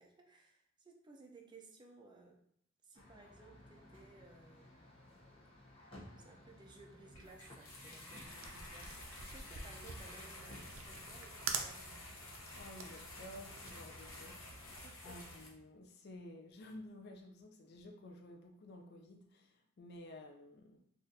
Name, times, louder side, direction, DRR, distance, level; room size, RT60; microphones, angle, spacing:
voice 1, 0.0-2.4 2.8-4.8 6.2-11.9 14.8-15.4, right 3 dB, 20° right, 1 dB, 0.5 m, -59 dB
sound 1, 2.9-14.8, left 1 dB, 30° left, 0.8 m, -60 dB
sound 2, 7.1-15.5, left 1 dB, 80° left, 0.9 m, -51 dB
sound 3, 8.4-14.9, right 6 dB, 90° right, 0.5 m, -45 dB
voice 2, 12.6-20.8, left 1 dB, 55° left, 3 dB, 0.4 m, -53 dB
4.0 x 2.4 x 2.6 m, 0.69 s
head